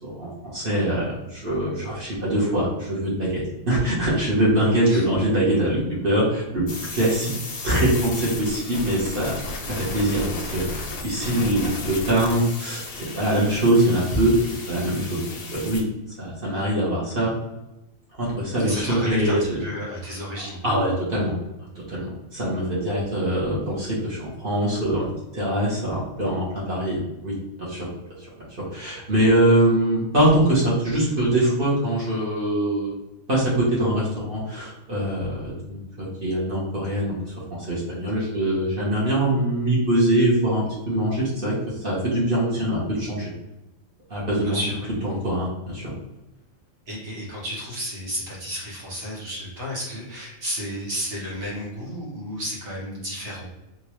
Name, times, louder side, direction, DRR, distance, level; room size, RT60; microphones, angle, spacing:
voice 1, 0.0-6.6 6.9-7.3 7.6-14.3 14.7-15.2 15.5-15.8 16.2-17.3 18.1-19.6 20.6-21.3 21.7-27.3 27.6-27.9 28.2-28.3 28.7-33.0 33.3-37.2 37.5-41.5 41.8-43.3 44.1-44.6 45.0-45.9, right 1 dB, 45° right, -6 dB, 1.3 m, -23 dB
sound 1, 6.7-15.8, left 3 dB, 65° left, 0.3 m, -34 dB
voice 2, 18.6-20.6 44.4-44.9 46.9-53.4, equal, 60° right, -5 dB, 1.6 m, -32 dB
3.6 x 2.5 x 3.0 m, 0.95 s
omnidirectional pair, 1.4 m